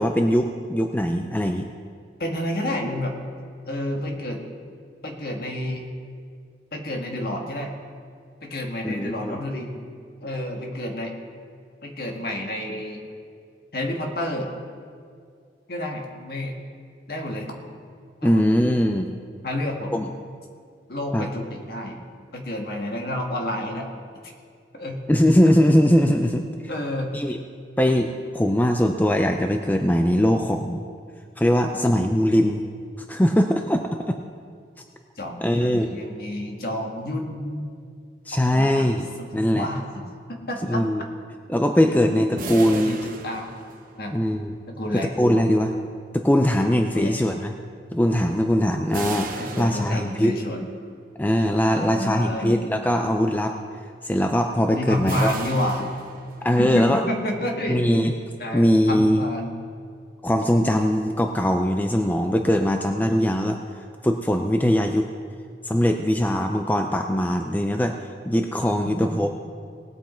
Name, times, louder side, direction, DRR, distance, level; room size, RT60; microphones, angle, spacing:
voice 1, 0.0-1.7 8.8-9.4 18.2-19.1 19.9-20.1 21.1-21.3 25.1-26.5 27.1-27.4 27.8-30.8 31.4-32.6 33.1-34.2 35.4-35.9 38.3-39.1 39.3-39.7 40.7-41.0 41.5-43.0 44.1-44.6 45.2-45.7 46.1-47.5 47.9-50.3 51.2-53.6 54.0-55.3 56.4-57.0 57.7-58.1 58.5-59.2 60.2-63.6 64.0-65.1 65.6-68.0 68.2-69.3, equal, 10° left, 5 dB, 0.4 m, -21 dB
voice 2, 2.2-3.1 3.6-4.4 5.0-5.9 6.7-7.7 8.4-9.9 10.2-11.1 11.8-13.0 13.7-14.5 15.7-16.6 17.1-17.5 18.2-18.4 19.4-19.9 20.9-22.0 22.3-23.9 24.2-24.3 24.7-25.0 26.7-27.1 31.7-32.0 35.2-37.7 38.5-39.3 39.6-40.0 40.3-40.8 42.6-43.5 43.9-44.2 44.7-45.1 46.9-47.2 49.4-50.6 51.7-52.6 54.7-55.9 56.6-57.8 58.4-59.5, left 1 dB, 55° left, 1 dB, 1.7 m, -30 dB
sound 1, 42.4-44.2 48.9-50.6 55.1-56.7, right 3 dB, 50° right, 1.0 m, -36 dB
18.5 x 8.3 x 4.4 m, 2.2 s
head